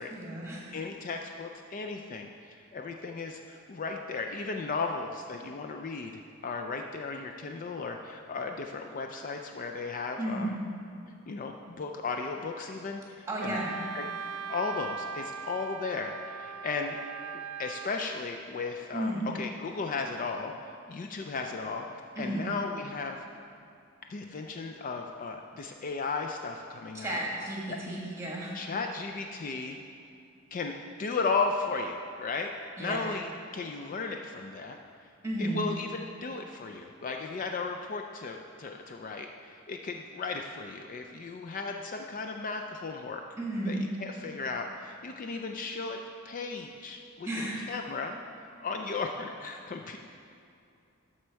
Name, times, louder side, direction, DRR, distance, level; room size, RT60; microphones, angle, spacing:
voice 1, 0.1-0.7 10.2-10.6 13.3-13.7 18.9-19.2 22.1-22.4 26.9-28.6 32.8-33.0 35.2-35.6 43.4-43.8 47.2-47.6, right 1 dB, 15° right, -3 dB, 1.4 m, -33 dB
voice 2, 0.7-2.3 2.7-6.1 6.4-10.6 11.3-13.6 13.9-14.0 14.5-17.0 17.6-21.9 22.2-23.2 24.1-27.2 27.7-27.8 28.5-29.8 30.5-32.5 32.8-34.8 35.4-43.2 43.7-46.0 46.2-48.1 48.6-50.0, left 4 dB, 40° left, 4 dB, 0.4 m, -35 dB
Wind instrument woodwind instrument, 13.4-18.0, right 6 dB, 75° right, 0.3 m, -39 dB
13.0 x 4.4 x 4.6 m, 2.5 s
head